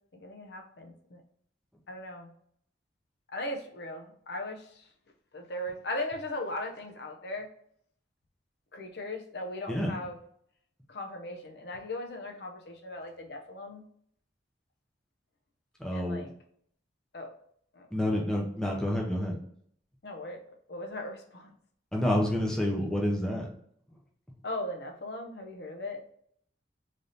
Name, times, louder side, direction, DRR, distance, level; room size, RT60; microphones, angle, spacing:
voice 1, 0.2-1.2 1.9-2.3 3.3-4.9 5.3-7.5 8.7-10.2 10.9-13.8 15.9-16.3 17.1-17.3 17.7-17.9 20.0-20.4 20.7-21.5 24.4-26.0, left 1 dB, 60° left, 2 dB, 0.6 m, -38 dB
voice 2, 15.8-16.2 17.9-19.4 21.9-23.5, left 1 dB, 5° left, -2 dB, 0.6 m, -28 dB
3.3 x 2.7 x 3.9 m, 0.64 s
head